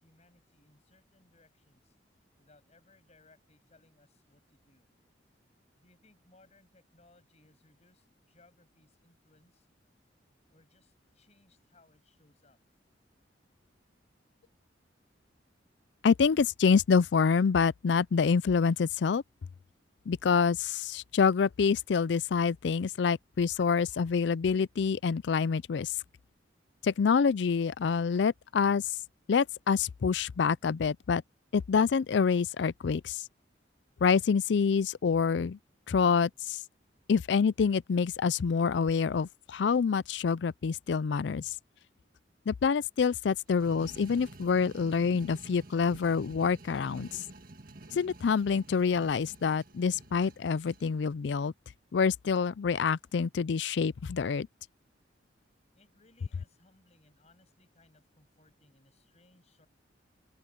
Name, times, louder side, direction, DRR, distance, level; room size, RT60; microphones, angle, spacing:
voice 1, 0.0-1.9 2.4-4.9 5.8-9.7 10.5-12.6 55.7-59.7, left 2 dB, 35° left, 7.9 m, -65 dB
voice 2, 16.0-19.2 20.1-25.9 26.8-28.8 29.3-31.2 31.5-33.2 34.0-35.6 35.9-36.6 37.1-41.5 42.5-47.1 48.0-51.5 51.9-54.5, left 5 dB, 70° left, 0.4 m, -27 dB
sound 1, 43.5-50.9, right 2 dB, 50° right, 1.7 m, -50 dB
open air
head